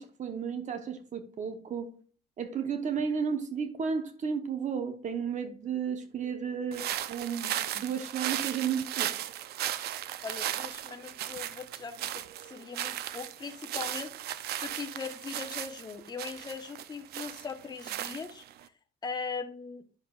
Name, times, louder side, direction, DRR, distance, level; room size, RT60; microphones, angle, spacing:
voice 1, 0.0-1.9 2.4-9.1, right 6 dB, 45° right, 1.1 m, -33 dB
sound 1, 6.7-18.6, right 12 dB, 70° right, 0.6 m, -36 dB
voice 2, 10.2-18.7 19.0-19.8, left 5 dB, 25° left, 1.1 m, -40 dB
9.8 x 6.8 x 2.5 m
cardioid pair, 110°, 17 cm